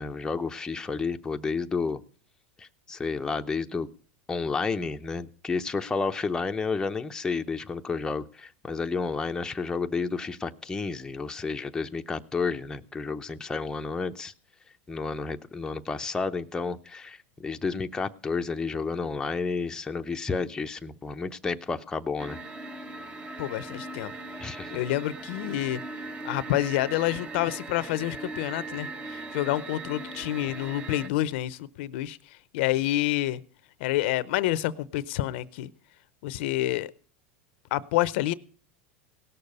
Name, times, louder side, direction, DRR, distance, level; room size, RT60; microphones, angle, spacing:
voice 1, 0.0-2.0 2.6-3.9 4.3-14.3 14.9-22.4 24.4-24.8, left 4 dB, 10° left, 0.7 m, -31 dB
sound 1, 22.2-31.1, right 3 dB, 15° right, 0.9 m, -39 dB
voice 2, 23.4-24.1 24.7-25.8 26.2-32.2 32.5-33.4 33.8-35.7 36.2-36.9 37.7-38.3, left 15 dB, 70° left, 0.6 m, -28 dB
17.5 x 6.7 x 5.4 m
supercardioid pair, 130°, 6 cm